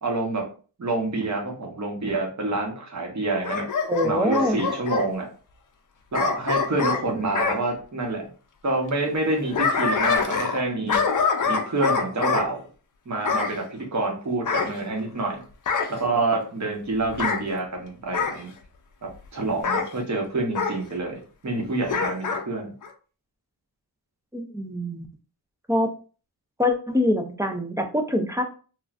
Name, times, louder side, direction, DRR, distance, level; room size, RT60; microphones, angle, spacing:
voice 1, 0.0-0.4 0.8-3.7 4.0-5.3 6.1-8.3 8.6-11.0 11.5-12.6 13.1-15.4 15.9-18.5 19.3-22.7, right 2 dB, 45° right, 0 dB, 1.0 m, -27 dB
Bark / Growling, 3.4-5.1 6.1-7.6 9.2-10.6 10.9-12.5 13.2-13.6 14.5-15.3 15.7-16.0 17.1-17.4 18.1-18.4 19.6-19.9 20.5-20.8 21.9-22.4 22.8-22.9, left 5 dB, 50° left, 0.5 m, -25 dB
voice 2, 3.9-4.6 24.3-25.1 25.7-25.9 26.6-28.4, left 1 dB, 10° right, 5 dB, 0.3 m, -24 dB
3.2 x 2.3 x 2.4 m, 0.38 s
wide cardioid pair, 105°, 40 cm